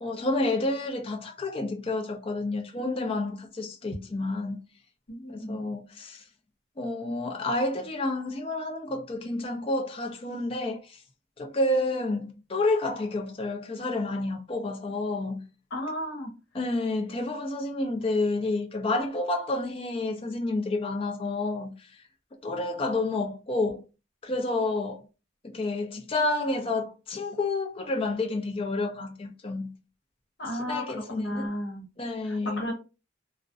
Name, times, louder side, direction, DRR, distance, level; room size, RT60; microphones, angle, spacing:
voice 1, 0.0-4.6 5.3-6.2 6.8-11.0 11.4-15.5 16.5-21.9 22.4-23.8 24.2-25.0 25.4-29.8 30.5-31.5 32.0-32.6, left 2 dB, 30° left, 0.4 m, -29 dB
voice 2, 5.1-5.6 15.7-16.3 30.4-30.8 31.2-31.9 32.2-32.7, equal, 60° left, 1.0 m, -33 dB
2.4 x 2.0 x 2.5 m
head